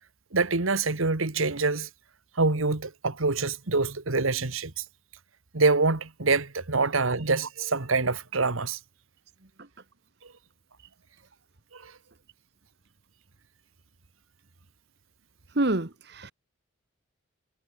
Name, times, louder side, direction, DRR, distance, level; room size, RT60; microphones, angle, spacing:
voice 1, 0.3-1.9 2.3-4.8 5.5-8.8 10.2-10.3 11.7-12.0, right 3 dB, 80° right, 1.7 m, -26 dB
voice 2, 15.5-16.3, right 2 dB, 55° right, 1.4 m, -27 dB
head